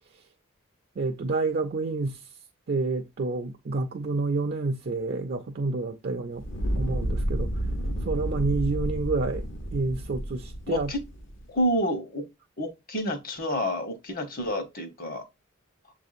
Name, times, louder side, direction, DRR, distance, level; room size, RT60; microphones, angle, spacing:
voice 1, 1.0-2.2 2.7-6.4 6.8-7.5 8.0-9.4 9.7-10.9, right 3 dB, 50° right, 0.4 m, -28 dB
Fire, 6.4-11.5, equal, 70° left, 1.1 m, -31 dB
voice 2, 10.7-11.0 11.5-12.3 12.6-15.2, equal, 45° left, 1.1 m, -29 dB
6.8 x 2.7 x 2.4 m
head